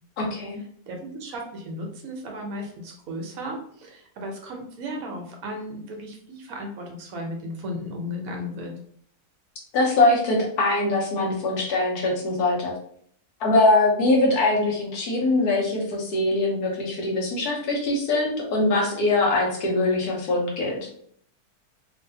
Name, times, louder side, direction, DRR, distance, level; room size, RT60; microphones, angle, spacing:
voice 1, 0.2-0.6 9.7-12.7 13.4-20.8, left 2 dB, 75° left, -1 dB, 1.4 m, -22 dB
voice 2, 0.9-8.7, equal, 65° right, 2 dB, 1.0 m, -35 dB
3.1 x 2.6 x 2.7 m, 0.62 s
omnidirectional pair, 1.7 m